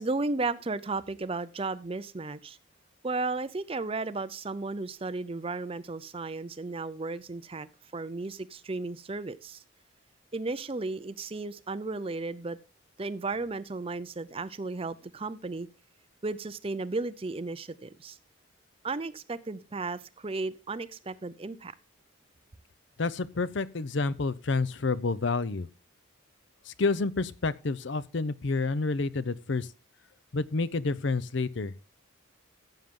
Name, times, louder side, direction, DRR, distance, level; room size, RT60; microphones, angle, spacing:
voice 1, 0.0-2.6 3.0-9.6 10.3-12.6 13.0-15.7 16.2-18.2 18.8-21.7, right 3 dB, 30° right, 0.5 m, -34 dB
voice 2, 23.0-25.7 26.7-29.7 30.3-31.7, left 3 dB, 60° left, 0.6 m, -29 dB
14.5 x 7.3 x 3.7 m
head